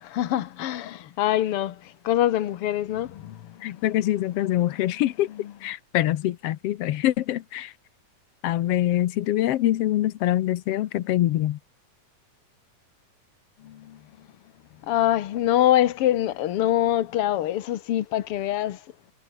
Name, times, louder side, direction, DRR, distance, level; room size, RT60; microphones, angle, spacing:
voice 1, 0.0-3.6 13.6-14.0 14.8-18.8, left 12 dB, 65° left, 1.5 m, -24 dB
voice 2, 3.6-7.7 8.4-11.6, left 14 dB, 85° left, 1.3 m, -24 dB
omnidirectional pair, 3.9 m